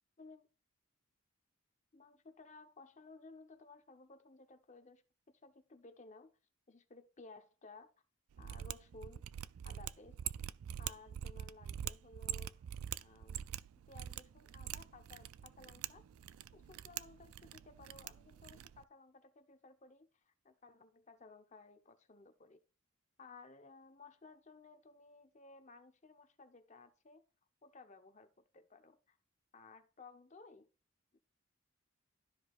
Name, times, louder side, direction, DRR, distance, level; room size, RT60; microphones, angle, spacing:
voice 1, 1.9-6.3 6.7-7.9 8.4-9.2 9.6-10.2 10.8-12.6 13.0-13.4 13.9-16.1 16.5-22.6 23.2-27.2 27.6-29.2 29.5-30.7 31.1-31.2, left 3 dB, 35° left, 0.8 m, -58 dB
Mechanisms, 8.3-18.8, right 10 dB, 85° right, 0.3 m, -45 dB
12.5 x 5.0 x 2.4 m
head